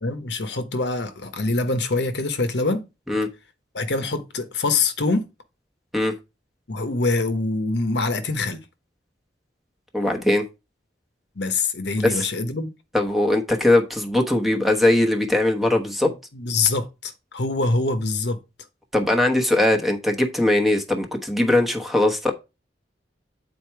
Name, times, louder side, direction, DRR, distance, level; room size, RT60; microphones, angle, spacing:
voice 1, 0.0-2.9 3.7-5.3 6.7-8.6 11.4-12.7 16.0-18.4, left 3 dB, 70° left, 1.0 m, -24 dB
voice 2, 9.9-10.5 12.0-12.3 12.9-16.1 18.9-22.3, left 1 dB, ahead, 1.1 m, -20 dB
8.5 x 4.3 x 4.6 m
head